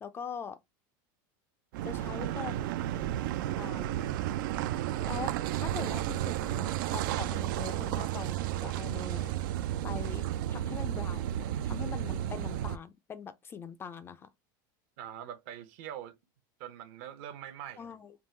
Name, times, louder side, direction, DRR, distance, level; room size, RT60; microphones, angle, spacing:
voice 1, 0.0-0.6 1.8-3.0 3.6-4.1 5.0-9.3 9.8-14.3 17.8-18.1, left 6 dB, 20° left, 0.3 m, -43 dB
Car passing by / Idling / Accelerating revving vroom, 1.7-12.8, right 12 dB, 75° right, 0.4 m, -33 dB
voice 2, 15.0-16.2 16.6-17.9, right 10 dB, 60° right, 0.8 m, -43 dB
3.6 x 2.4 x 4.2 m
supercardioid pair, 145°, 11 cm